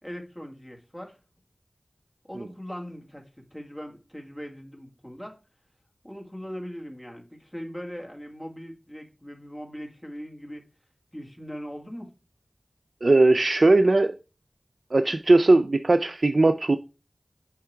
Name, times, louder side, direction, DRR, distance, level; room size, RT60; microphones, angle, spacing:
voice 1, 0.0-1.2 2.2-5.4 6.0-10.6 11.1-12.1, equal, 10° left, 1.7 m, -40 dB
voice 2, 13.0-14.2 14.9-16.8, right 2 dB, 65° right, 0.3 m, -19 dB
5.7 x 4.8 x 4.5 m
wide cardioid pair, 60°, 0 cm